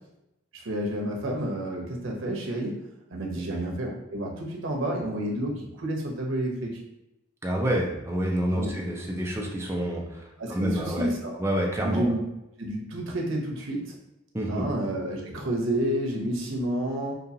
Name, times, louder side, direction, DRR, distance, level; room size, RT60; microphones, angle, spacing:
voice 1, 0.5-2.8 3.1-6.8 8.5-8.8 10.4-11.4 11.8-12.2 12.6-14.0 14.5-17.1, right 1 dB, 85° right, -1 dB, 0.9 m, -30 dB
voice 2, 7.4-10.2 10.5-11.1 11.4-12.1 14.3-14.6, equal, 15° right, -1 dB, 0.7 m, -28 dB
5.3 x 2.5 x 2.8 m, 0.90 s
head